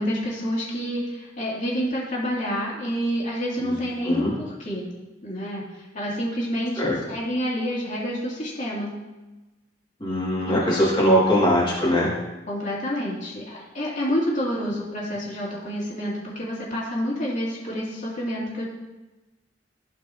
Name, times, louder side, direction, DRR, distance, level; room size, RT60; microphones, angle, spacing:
voice 1, 0.0-4.9 5.2-9.0 10.3-10.9 12.5-18.7, equal, 45° left, -5 dB, 2.7 m, -28 dB
voice 2, 10.0-12.1, equal, 25° left, -7 dB, 2.3 m, -21 dB
15.5 x 5.2 x 2.9 m, 1.1 s
head